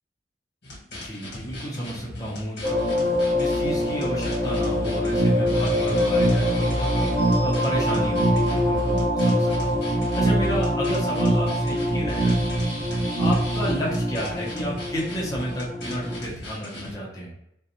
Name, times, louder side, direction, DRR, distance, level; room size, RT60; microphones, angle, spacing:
sound 1, 0.6-16.9, left 1 dB, 75° left, 1.1 m, -38 dB
voice 1, 0.9-3.0 3.3-12.7 13.1-17.3, equal, 20° left, -5 dB, 0.7 m, -32 dB
sound 2, 2.6-16.2, left 1 dB, 50° left, 0.9 m, -26 dB
sound 3, 5.1-14.1, right 2 dB, 60° right, 0.3 m, -25 dB
2.5 x 2.2 x 2.8 m, 0.79 s
head